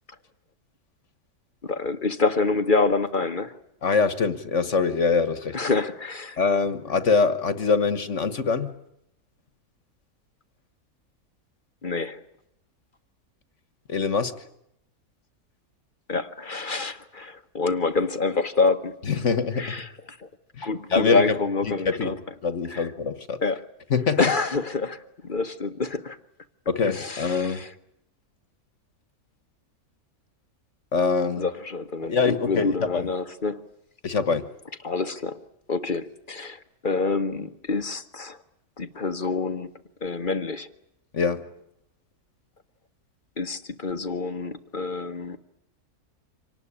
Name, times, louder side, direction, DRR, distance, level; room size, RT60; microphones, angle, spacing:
voice 1, 1.6-3.6 5.5-6.4 11.8-12.2 16.1-19.0 19.6-20.3 20.6-22.1 22.7-22.9 23.4-23.7 24.2-26.2 26.9-27.7 31.4-33.6 34.8-38.4 38.8-39.7 40.0-40.7 43.4-45.4, left 3 dB, 40° left, 1.2 m, -27 dB
voice 2, 3.8-5.6 6.4-8.7 13.9-14.4 19.1-19.8 20.5-21.3 21.6-22.1 22.4-23.4 23.9-24.3 26.7-27.6 30.9-31.5 32.0-33.1 34.0-34.5 41.1-41.4, left 5 dB, 55° left, 1.6 m, -24 dB
25.5 x 19.0 x 10.0 m
omnidirectional pair, 1.5 m